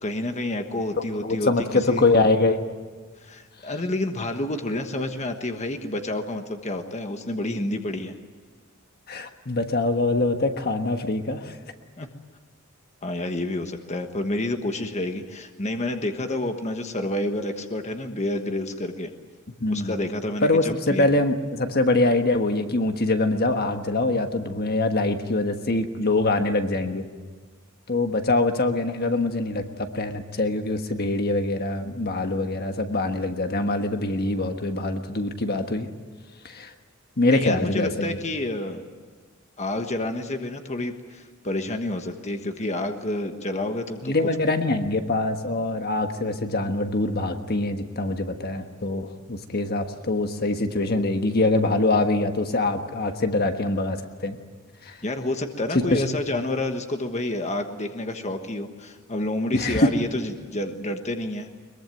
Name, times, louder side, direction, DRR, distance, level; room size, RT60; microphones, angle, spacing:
voice 1, 0.0-2.0 3.2-8.1 12.0-12.1 13.0-19.1 19.7-21.1 37.3-38.8 39.6-44.3 55.0-61.5, left 1 dB, 35° left, 6 dB, 1.4 m, -29 dB
voice 2, 1.2-2.7 9.1-11.6 19.6-19.9 20.4-27.0 27.9-35.9 36.4-36.7 37.2-38.2 44.0-54.4 54.8-55.0 55.9-56.0 59.5-59.9, left 2 dB, 50° left, 6 dB, 1.4 m, -24 dB
22.5 x 22.0 x 9.3 m, 1.4 s
head